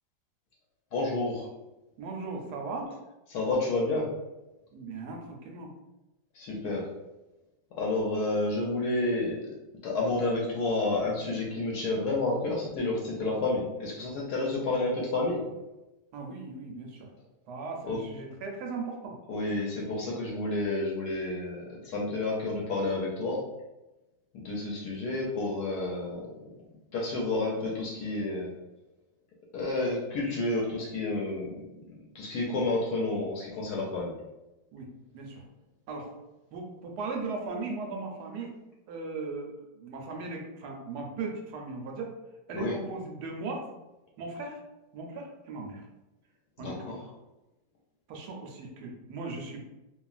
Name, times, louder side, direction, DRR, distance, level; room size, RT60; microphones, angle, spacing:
voice 1, 0.9-1.5 3.3-4.1 6.4-6.9 7.8-9.4 9.8-15.4 17.8-18.0 19.3-23.4 24.3-26.3 26.9-28.5 29.5-31.6 32.1-34.1 42.5-42.7 46.6-47.0, left 2 dB, 70° left, -3 dB, 1.0 m, -30 dB
voice 2, 2.0-3.0 4.7-5.7 16.1-17.1 17.5-19.2 32.3-32.7 34.7-34.9 35.1-35.4 35.9-36.1 36.5-38.6 38.9-42.1 42.5-43.7 44.2-44.6 44.9-45.8 46.6-46.9 48.1-49.6, right 3 dB, 70° right, 1 dB, 1.0 m, -38 dB
3.0 x 2.3 x 2.3 m, 1.0 s
omnidirectional pair, 2.0 m